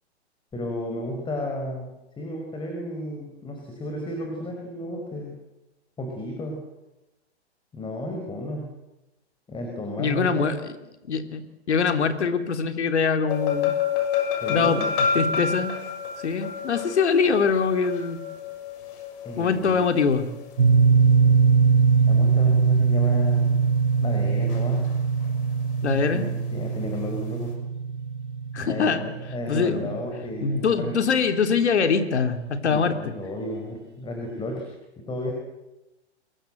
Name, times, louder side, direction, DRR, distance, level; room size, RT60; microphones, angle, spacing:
voice 1, 0.5-1.9 2.2-5.3 6.0-6.6 7.7-8.7 9.5-10.5 14.4-14.9 19.2-19.8 22.1-23.7 24.0-24.9 26.1-27.5 28.7-31.0 32.7-34.7 35.0-35.3, left 1 dB, 15° left, 2 dB, 5.5 m, -33 dB
voice 2, 10.0-10.6 11.1-11.4 11.7-13.8 14.5-15.7 16.2-18.2 19.4-20.3 25.8-26.3 28.5-29.0 29.5-29.9 30.4-32.9, left 5 dB, 75° left, 8 dB, 3.3 m, -23 dB
sound 1, 13.3-20.6 24.5-24.9 25.2-25.3, left 6 dB, 50° left, 7.1 m, -29 dB
sound 2, 20.6-30.5, right 5 dB, 80° right, 2.2 m, -21 dB
29.0 x 22.5 x 8.0 m, 0.98 s
hypercardioid pair, 120°, 34 cm